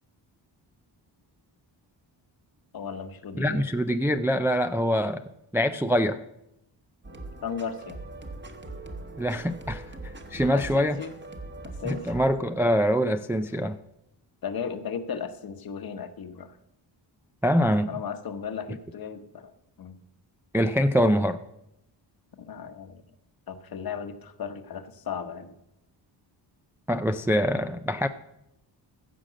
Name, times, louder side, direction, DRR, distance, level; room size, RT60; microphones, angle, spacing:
voice 1, 2.7-3.7 7.4-8.1 10.4-11.2 11.8-12.1 14.4-16.6 17.9-19.5 19.8-20.0 22.4-23.0 23.5-25.5, left 6 dB, 50° left, 9 dB, 1.1 m, -36 dB
voice 2, 3.4-5.2 5.5-6.2 9.2-9.8 10.3-11.0 11.8-13.8 17.4-17.9 20.5-21.4 26.9-28.1, equal, 5° right, 8 dB, 0.3 m, -24 dB
sound 1, 7.0-12.3, right 2 dB, 25° right, 1.3 m, -41 dB
15.0 x 5.1 x 7.5 m, 0.83 s
wide cardioid pair, 130°, 45 cm